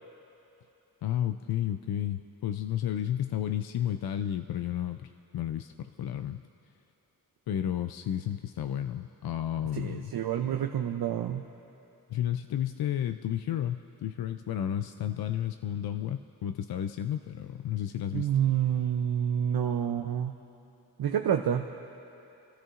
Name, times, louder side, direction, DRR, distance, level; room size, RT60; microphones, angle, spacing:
voice 1, 1.0-6.4 7.5-10.1 12.1-18.3, left 10 dB, 70° left, 9 dB, 0.5 m, -32 dB
voice 2, 9.7-11.4 18.1-20.4 21.0-21.7, right 9 dB, 70° right, 5 dB, 0.6 m, -28 dB
26.5 x 13.5 x 2.5 m, 2.8 s
cardioid pair, 60°, 38 cm